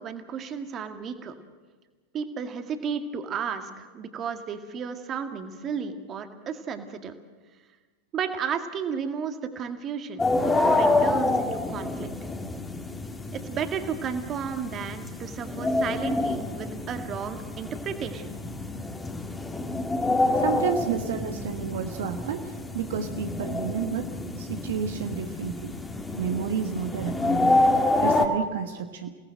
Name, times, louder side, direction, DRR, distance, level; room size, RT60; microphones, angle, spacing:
voice 1, 0.0-1.3 2.1-7.1 8.1-12.1 13.3-18.4, right 7 dB, 30° right, 7 dB, 2.1 m, -33 dB
sound 1, 10.2-28.3, left 2 dB, 10° left, 2.1 m, -27 dB
voice 2, 20.4-25.7 26.2-27.6 28.0-29.2, right 8 dB, 55° right, 6 dB, 1.4 m, -31 dB
29.0 x 18.0 x 7.8 m, 1.3 s
figure-of-eight pair, 90°, 0 cm